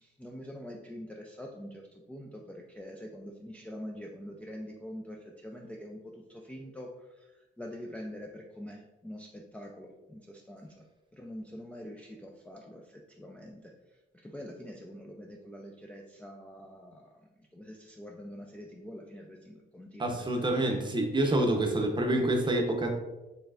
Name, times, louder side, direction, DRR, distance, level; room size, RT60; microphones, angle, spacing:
voice 1, 0.0-10.8 11.1-13.7 14.1-17.1 17.5-20.8 21.8-21.9, equal, 5° left, 0 dB, 0.4 m, -45 dB
voice 2, 20.0-22.9, right 1 dB, 25° right, 2 dB, 0.8 m, -27 dB
4.5 x 3.2 x 2.4 m, 1.1 s
cardioid pair, 90°, 20 cm